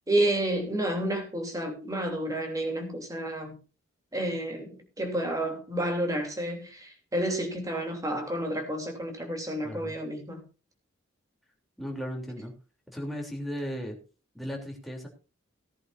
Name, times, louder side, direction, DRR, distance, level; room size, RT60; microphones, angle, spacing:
voice 1, 0.1-3.6 4.1-10.4, right 1 dB, 20° right, 3.1 m, -30 dB
voice 2, 9.6-10.0 11.8-12.5 12.9-14.0 14.3-15.1, equal, ahead, 3.2 m, -36 dB
18.0 x 11.0 x 2.7 m
head